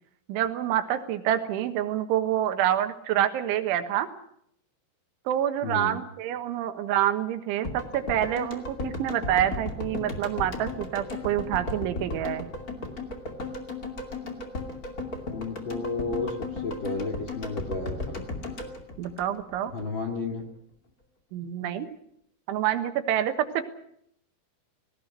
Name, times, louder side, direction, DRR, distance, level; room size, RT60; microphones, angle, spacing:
voice 1, 0.3-4.1 5.3-12.5 19.0-19.7 21.3-21.9 22.5-23.6, right 11 dB, 90° right, 9 dB, 3.8 m, -27 dB
voice 2, 5.6-6.0 15.3-18.2 19.7-20.4, left 3 dB, 45° left, 4 dB, 1.6 m, -32 dB
sound 1, 7.6-19.8 20.1-20.2, left 3 dB, 30° left, 1.9 m, -35 dB
18.5 x 18.5 x 9.5 m, 0.72 s
omnidirectional pair, 5.4 m